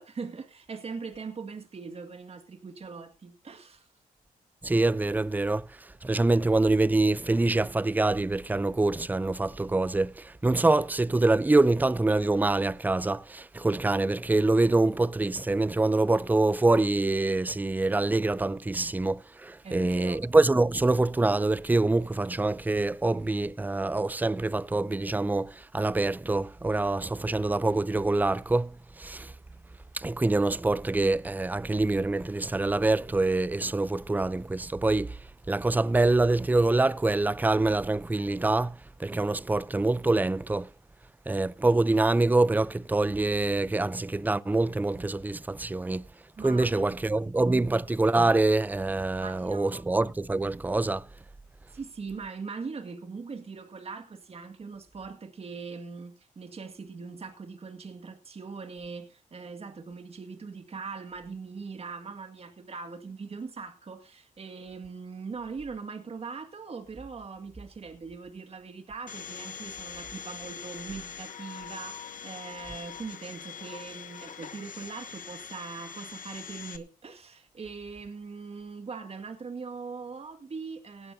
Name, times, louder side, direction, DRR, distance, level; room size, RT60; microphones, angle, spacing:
voice 1, 0.0-3.9 19.6-20.2 46.4-47.2 47.5-47.6 49.2-49.9 51.7-81.1, right 4 dB, 45° right, 1.9 m, -41 dB
voice 2, 4.6-5.7 6.0-29.3 29.9-35.2 35.5-40.7 41.3-46.0 46.4-51.0, right 2 dB, 10° right, 0.5 m, -25 dB
Domestic sounds home sounds, 69.1-76.8, left 7 dB, 70° left, 1.2 m, -43 dB
17.5 x 12.5 x 2.7 m
cardioid pair, 75°, 14 cm